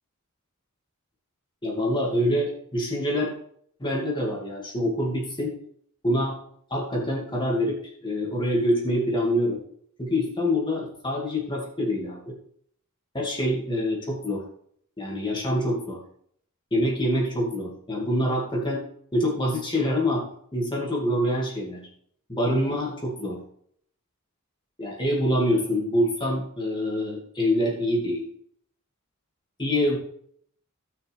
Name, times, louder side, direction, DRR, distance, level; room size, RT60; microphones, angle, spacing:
voice 1, 1.6-3.3 3.8-5.5 6.0-6.3 6.7-9.6 10.0-12.4 13.1-14.4 15.0-16.0 16.7-18.8 19.1-20.2 20.5-21.8 22.3-23.4 24.8-28.2 29.6-30.0, equal, 20° left, -2 dB, 2.4 m, -25 dB
15.5 x 6.2 x 3.5 m, 0.65 s
head